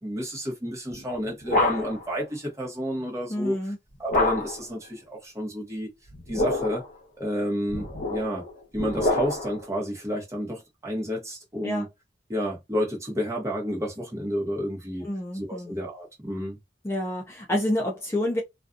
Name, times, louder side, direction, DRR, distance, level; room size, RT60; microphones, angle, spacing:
voice 1, 0.0-3.7 4.0-5.9 6.3-6.8 7.2-8.4 8.7-11.8 12.3-15.1 15.3-16.6, equal, 15° right, 0.9 m, -30 dB
sound 1, 0.9-2.1 4.1-4.7 6.1-6.9 7.7-9.6, left 2 dB, 50° left, 0.9 m, -27 dB
voice 2, 3.3-3.8 11.6-11.9 15.0-15.8 16.8-18.4, left 1 dB, 15° left, 0.4 m, -28 dB
2.5 x 2.3 x 2.4 m
head